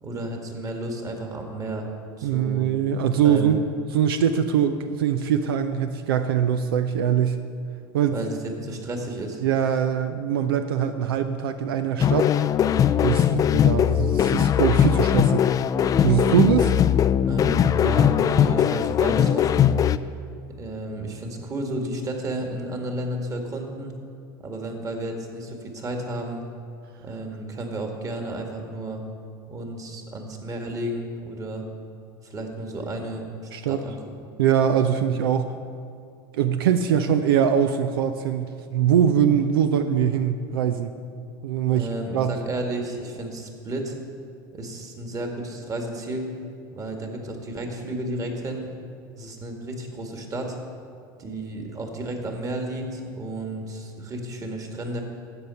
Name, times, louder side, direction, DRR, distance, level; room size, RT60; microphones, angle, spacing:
voice 1, 0.0-1.9 2.2-2.7 3.2-3.6 8.1-9.4 17.3-19.7 20.6-23.9 24.4-26.4 27.0-29.0 29.5-31.6 32.2-33.3 33.7-34.0 41.7-43.9 44.5-46.3 46.7-48.7 49.2-50.6 51.2-55.0, right 1 dB, 30° right, 3 dB, 1.9 m, -32 dB
voice 2, 2.2-3.6 3.9-7.4 7.9-8.2 9.4-12.3 13.0-15.5 16.0-16.7 33.5-33.8 34.4-35.5 36.3-40.9 41.4-41.9 42.1-42.3, right 8 dB, 90° right, 9 dB, 0.6 m, -22 dB
sound 1, 12.0-20.0, left 9 dB, 30° left, 0.3 m, -20 dB
12.0 x 8.0 x 5.6 m, 2.4 s
supercardioid pair, 105°, 12 cm